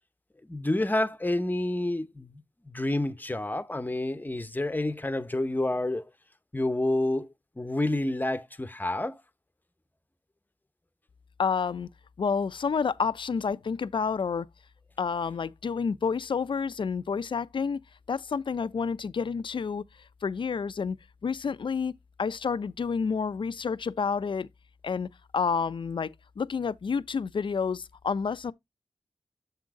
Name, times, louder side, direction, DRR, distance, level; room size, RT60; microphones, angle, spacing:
voice 1, 0.5-6.1 6.5-7.3 7.6-9.2, left 1 dB, 20° left, 0.9 m, -29 dB
voice 2, 11.4-11.9 12.2-14.5 15.0-17.8 18.1-19.8 20.2-21.0 21.2-21.9 22.2-24.5 24.8-25.1 25.3-28.5, left 5 dB, 60° left, 0.5 m, -29 dB
7.3 x 3.9 x 4.7 m
cardioid pair, 45°, 9 cm